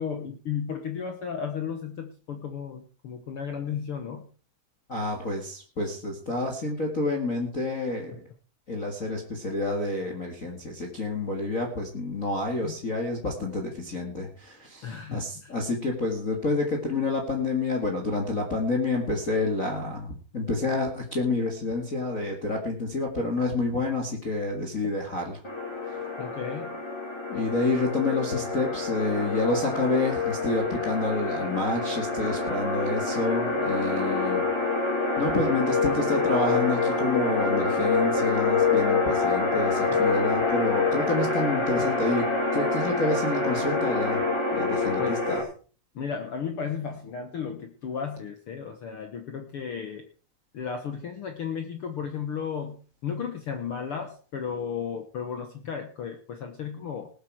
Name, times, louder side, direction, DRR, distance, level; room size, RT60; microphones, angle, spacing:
voice 1, 0.0-4.3 12.6-12.7 14.8-15.5 26.2-26.7 45.0-45.2 45.9-50.1 50.5-57.1, left 7 dB, 70° left, 6 dB, 1.3 m, -34 dB
voice 2, 4.9-8.3 8.7-25.4 25.8-26.0 27.3-34.4 35.2-42.3 42.5-44.2 44.5-45.4, left 2 dB, 35° left, 1 dB, 1.5 m, -28 dB
sound 1, 25.4-45.4, left 3 dB, 10° left, 1.8 m, -26 dB
19.0 x 8.2 x 4.6 m, 0.39 s
omnidirectional pair, 4.1 m